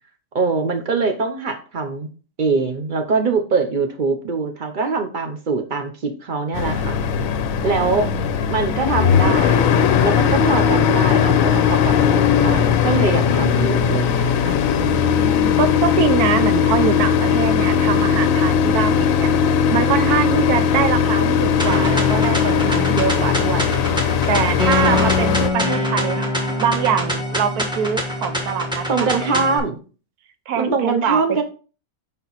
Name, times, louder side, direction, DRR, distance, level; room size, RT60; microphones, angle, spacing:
voice 1, 0.3-2.1 2.4-7.0 7.6-8.1 8.5-9.7 10.0-15.3 24.8-25.3 28.9-29.8 30.6-31.4, right 4 dB, 45° right, 6 dB, 0.7 m, -23 dB
sound 1, 6.5-25.5, left 7 dB, 70° left, 1.0 m, -18 dB
voice 2, 7.8-8.3 14.7-19.3 19.7-23.7 24.3-28.9 29.1-29.5 30.5-31.4, right 7 dB, 75° right, 10 dB, 1.2 m, -24 dB
sound 2, 21.6-29.6, left 1 dB, 5° right, 1.1 m, -24 dB
5.5 x 4.4 x 4.0 m, 0.37 s
omnidirectional pair, 1.6 m